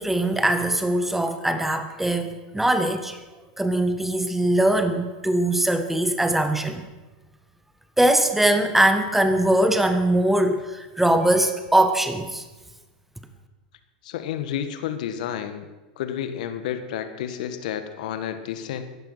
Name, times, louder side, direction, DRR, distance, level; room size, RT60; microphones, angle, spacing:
voice 1, 0.0-3.2 3.6-6.8 8.0-12.4, right 1 dB, 5° right, 8 dB, 1.5 m, -21 dB
voice 2, 14.0-15.7 16.0-18.8, left 9 dB, 70° left, 10 dB, 1.5 m, -30 dB
15.5 x 11.5 x 5.7 m, 1.2 s
hypercardioid pair, 105°, 4 cm